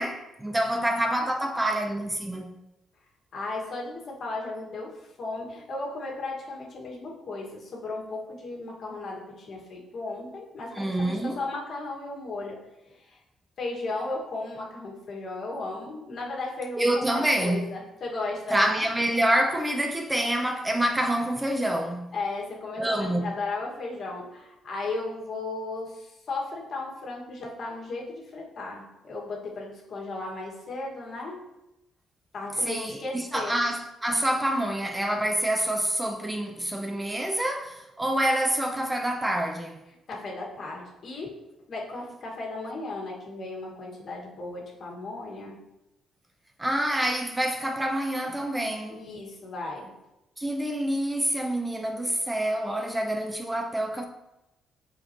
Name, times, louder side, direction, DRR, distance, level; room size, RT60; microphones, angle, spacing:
voice 1, 0.0-2.5 10.7-11.4 16.8-17.7 18.5-22.1 22.8-23.4 32.6-39.8 46.6-49.0 50.4-54.0, right 1 dB, 10° right, 0.6 m, -27 dB
voice 2, 3.3-12.6 12.9-13.2 13.6-18.8 22.1-31.4 32.3-33.6 40.1-41.3 41.7-45.6 48.9-49.9, left 3 dB, 55° left, 1.7 m, -35 dB
7.3 x 4.4 x 2.9 m
cardioid pair, 90°, 0 cm